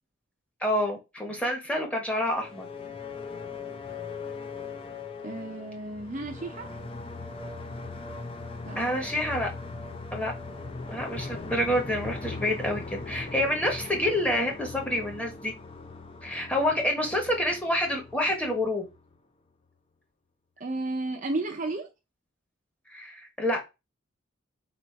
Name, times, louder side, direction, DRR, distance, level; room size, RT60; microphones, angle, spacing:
voice 1, 0.6-2.7 8.7-9.5 10.1-10.3 10.9-15.5 16.2-18.8 22.9-23.6, left 1 dB, 5° left, 1.0 m, -28 dB
sound 1, 2.3-19.1, left 3 dB, 25° left, 0.5 m, -40 dB
voice 2, 5.2-6.7 8.7-9.1 20.6-21.9, right 2 dB, 40° right, 0.6 m, -33 dB
4.0 x 2.6 x 4.6 m
head